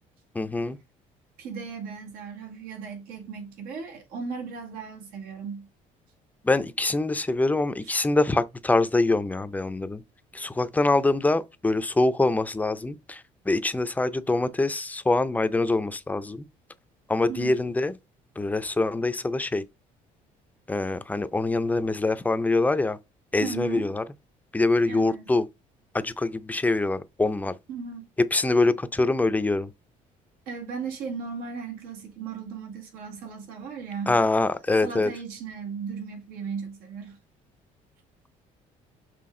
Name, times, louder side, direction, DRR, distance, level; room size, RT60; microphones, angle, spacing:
voice 1, 0.3-0.8 6.4-10.0 10.3-13.2 13.5-16.4 17.1-17.9 18.4-19.6 20.7-23.0 23.3-24.0 24.5-25.4 25.9-27.5 28.3-29.7 34.1-35.1, left 2 dB, 10° left, 0.5 m, -24 dB
voice 2, 1.4-5.7 7.8-8.0 17.3-17.6 23.4-23.9 24.9-25.3 27.7-28.1 30.5-34.2 34.8-37.2, right 6 dB, 85° right, 2.0 m, -36 dB
5.9 x 4.9 x 3.7 m
cardioid pair, 120°, 15 cm